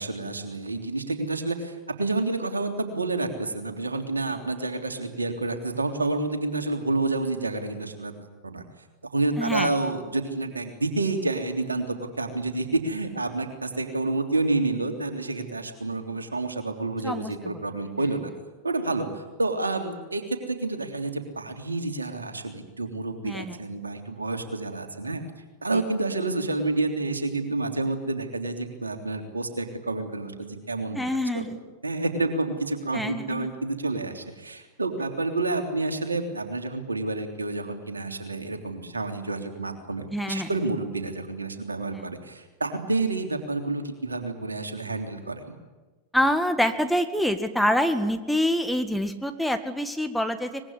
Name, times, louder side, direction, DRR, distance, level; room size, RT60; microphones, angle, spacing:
voice 1, 0.0-8.1 8.4-8.6 9.1-18.3 18.6-25.2 25.6-31.0 31.3-31.5 31.8-45.6, right 2 dB, 80° right, 5 dB, 3.3 m, -29 dB
voice 2, 9.4-9.7 17.0-17.3 23.2-23.6 25.7-25.8 30.9-31.6 32.9-33.6 40.1-40.5 41.9-42.1 46.1-50.6, equal, ahead, 6 dB, 1.9 m, -26 dB
24.5 x 21.0 x 9.8 m, 1.2 s
figure-of-eight pair, 90°, 0 cm